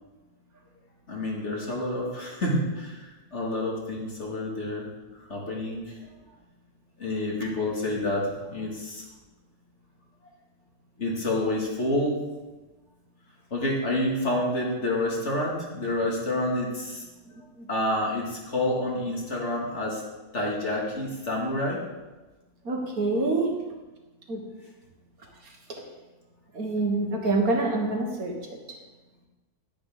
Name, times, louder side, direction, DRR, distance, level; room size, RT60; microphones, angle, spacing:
voice 1, 1.1-4.9 5.3-6.0 7.0-9.0 11.0-12.2 13.5-17.1 17.7-20.0 20.3-21.8, left 1 dB, 45° left, -3 dB, 2.6 m, -28 dB
voice 2, 22.7-23.5 24.3-24.4 25.7-25.8 26.5-28.3, right 2 dB, 65° right, 1 dB, 2.0 m, -26 dB
11.0 x 10.0 x 3.8 m, 1.1 s
omnidirectional pair, 1.7 m